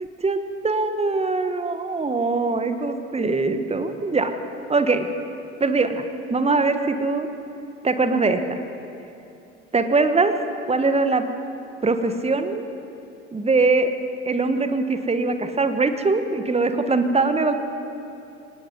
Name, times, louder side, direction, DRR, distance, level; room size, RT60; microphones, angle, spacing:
voice 1, 0.2-4.3 4.7-5.1 5.6-7.3 7.8-8.6 9.7-10.4 10.7-11.2 11.8-12.6 13.3-13.9 14.3-17.6, right 3 dB, 15° right, 8 dB, 1.5 m, -22 dB
26.5 x 18.0 x 5.4 m, 2.8 s
figure-of-eight pair, 60°, 37 cm